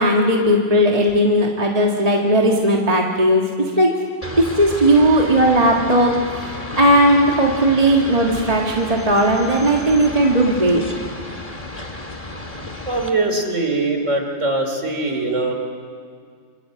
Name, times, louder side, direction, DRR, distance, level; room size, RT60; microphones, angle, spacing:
voice 1, 0.0-3.4 3.8-3.9 4.4-10.8, right 1 dB, 20° right, -1 dB, 1.8 m, -16 dB
sound 1, 4.2-13.1, left 2 dB, 20° left, 2.0 m, -32 dB
voice 2, 12.9-15.5, right 2 dB, 35° right, 4 dB, 3.5 m, -22 dB
29.0 x 24.5 x 7.7 m, 2.1 s
omnidirectional pair, 2.1 m